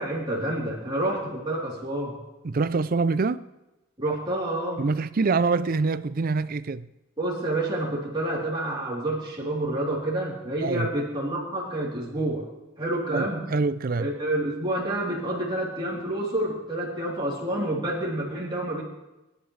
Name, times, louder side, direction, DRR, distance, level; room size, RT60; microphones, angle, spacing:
voice 1, 0.0-2.2 4.0-4.8 7.2-12.5 12.8-13.5 14.0-18.8, right 1 dB, 25° right, 3.4 m, -28 dB
voice 2, 2.4-3.5 4.8-6.9 10.6-10.9 13.1-14.1, right 4 dB, 45° right, 0.5 m, -25 dB
25.0 x 11.5 x 3.3 m
head